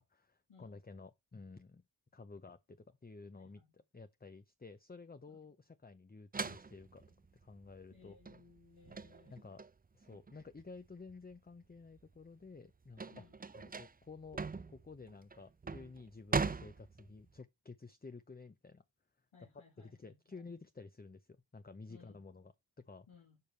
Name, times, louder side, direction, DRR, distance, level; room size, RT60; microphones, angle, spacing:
voice 1, 0.1-1.8 2.1-7.0 7.4-8.2 9.3-9.6 9.9-13.2 13.5-14.4 14.7-18.8 19.8-23.1, left 4 dB, 20° left, 0.7 m, -53 dB
voice 2, 3.3-3.7 5.3-5.4 7.9-9.6 13.1-13.4 19.3-20.5 21.9-22.3 23.1-23.4, left 5 dB, 90° left, 2.4 m, -63 dB
sound 1, 6.3-11.4 11.8-17.4, right 4 dB, 20° right, 0.5 m, -41 dB
6.9 x 5.1 x 4.5 m
cardioid pair, 45°, 48 cm